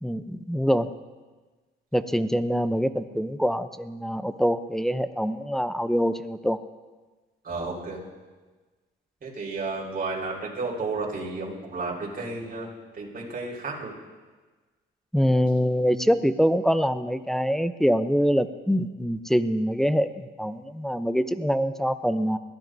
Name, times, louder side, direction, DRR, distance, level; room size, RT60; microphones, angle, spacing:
voice 1, 0.0-0.9 1.9-6.6 15.1-22.4, equal, ahead, 11 dB, 0.6 m, -24 dB
voice 2, 7.4-8.0 9.2-12.7 12.9-13.9, right 3 dB, 45° right, -3 dB, 4.9 m, -32 dB
21.5 x 15.0 x 2.7 m, 1.3 s
cardioid pair, 90°, 20 cm